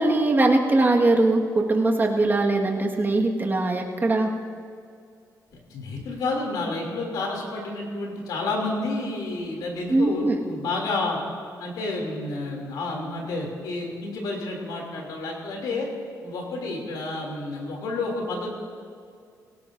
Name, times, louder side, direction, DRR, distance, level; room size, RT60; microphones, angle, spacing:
voice 1, 0.0-4.3 9.9-10.4, right 2 dB, 30° right, 1 dB, 1.7 m, -21 dB
voice 2, 5.5-11.2 11.6-15.9 16.2-18.5, left 2 dB, 90° left, 0 dB, 3.0 m, -30 dB
17.5 x 17.5 x 2.7 m, 2.2 s
cardioid pair, 85°, 7 cm